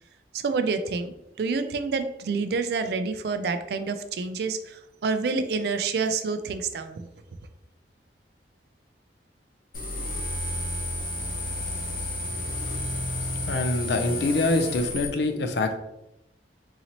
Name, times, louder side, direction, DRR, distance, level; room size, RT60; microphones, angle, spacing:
voice 1, 0.3-7.1, right 4 dB, 65° right, 9 dB, 0.3 m, -28 dB
sound 1, 9.7-15.1, left 1 dB, 50° left, 0.8 m, -31 dB
voice 2, 13.5-15.8, left 2 dB, 70° left, 7 dB, 0.4 m, -25 dB
4.0 x 2.8 x 2.9 m, 0.90 s
head